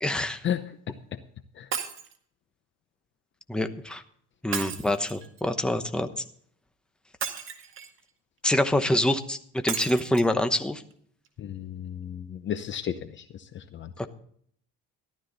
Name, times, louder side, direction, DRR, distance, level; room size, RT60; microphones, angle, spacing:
voice 1, 0.0-0.4 3.5-4.0 4.4-6.1 8.4-10.8 14.0-14.1, left 1 dB, 5° left, 8 dB, 1.0 m, -26 dB
Shatter, 1.7-2.2 4.5-5.4 7.2-8.0 9.7-10.3 10.9-11.0 11.3-11.4, right 8 dB, 45° right, 2.1 m, -34 dB
voice 2, 11.4-13.9, left 9 dB, 40° left, 10 dB, 0.8 m, -33 dB
14.5 x 12.0 x 3.9 m, 0.62 s
cardioid pair, 135°, 29 cm